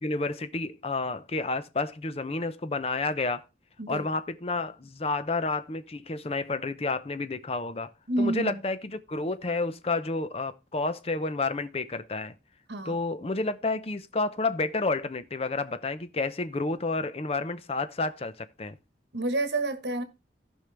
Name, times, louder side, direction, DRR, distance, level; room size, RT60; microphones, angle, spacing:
voice 1, 0.0-3.4 3.9-7.9 8.2-12.3 12.9-18.8, left 3 dB, 35° left, 0.6 m, -30 dB
voice 2, 8.1-8.6 12.7-12.9 19.1-20.0, right 2 dB, 75° right, 1.3 m, -29 dB
15.5 x 5.5 x 3.3 m
head